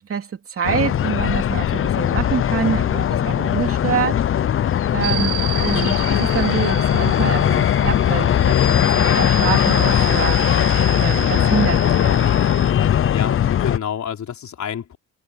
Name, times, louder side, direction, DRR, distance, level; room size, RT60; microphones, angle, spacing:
voice 1, 0.0-4.2 4.9-10.4 11.0-12.3, right 7 dB, 40° right, 2.8 m, -26 dB
sound 1, 0.6-13.8, left 10 dB, 40° left, 0.5 m, -19 dB
sound 2, 5.0-12.7, right 6 dB, 75° right, 4.9 m, -31 dB
voice 2, 13.1-15.0, left 8 dB, 55° left, 4.3 m, -28 dB
cardioid pair, 140°, 34 cm